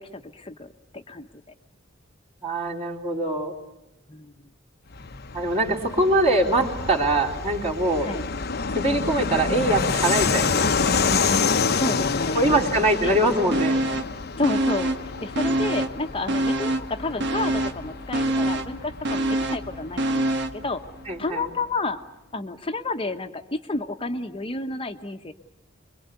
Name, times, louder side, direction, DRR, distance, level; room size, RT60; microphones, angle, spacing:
voice 1, 0.0-1.4 4.1-4.3 8.0-8.2 11.7-12.5 13.0-13.2 14.4-20.8 21.2-22.0 22.3-25.3, left 2 dB, 25° left, 7 dB, 1.1 m, -30 dB
voice 2, 2.4-3.5 5.3-8.1 8.7-10.9 12.3-13.8 21.1-21.5, right 1 dB, 35° right, -5 dB, 3.7 m, -23 dB
Fixed-wing aircraft airplane, 4.9-21.1, left 5 dB, 50° left, 0.9 m, -28 dB
sound 1, 13.5-14.2 14.4-16.0 16.3-20.6 21.0-21.1, right 1 dB, 60° right, 1.3 m, -25 dB
26.0 x 23.0 x 8.2 m, 0.92 s
head